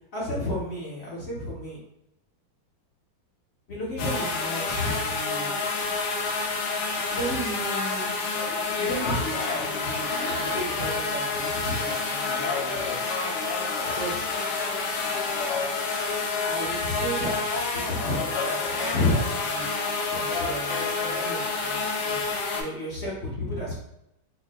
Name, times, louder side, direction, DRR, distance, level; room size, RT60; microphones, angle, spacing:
voice 1, 0.1-1.8 3.7-5.5 7.1-8.2 8.8-13.0 13.9-14.3 16.4-17.4 17.7-19.7 20.1-23.7, left 1 dB, 45° left, -6 dB, 0.8 m, -32 dB
sound 1, 4.0-22.6, left 3 dB, 80° left, 1.5 m, -28 dB
4.4 x 3.0 x 2.2 m, 0.81 s
omnidirectional pair, 2.3 m